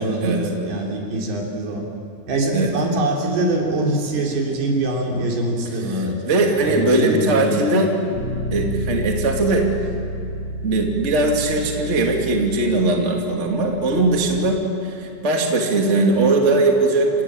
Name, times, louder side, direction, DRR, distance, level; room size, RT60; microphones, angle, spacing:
voice 1, 0.0-1.9 2.3-6.2 6.6-7.8, right 2 dB, 80° right, -1 dB, 5.4 m, -23 dB
voice 2, 5.9-7.9 8.5-9.7 10.6-14.6 14.8-17.2, right 2 dB, 20° right, 1 dB, 2.1 m, -19 dB
Bass guitar, 8.1-14.4, equal, 70° left, 0.9 m, -30 dB
28.5 x 17.0 x 8.9 m, 2.7 s
omnidirectional pair, 4.6 m